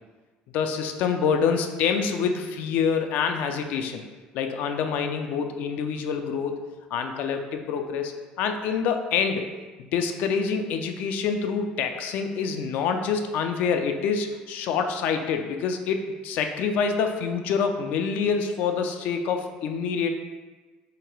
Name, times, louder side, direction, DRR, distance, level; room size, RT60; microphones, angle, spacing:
voice 1, 0.5-4.0 4.3-6.6 6.9-9.4 9.8-20.1, left 6 dB, 70° left, 5 dB, 0.5 m, -26 dB
3.8 x 2.9 x 4.6 m, 1.3 s
cardioid pair, 115°, 3 cm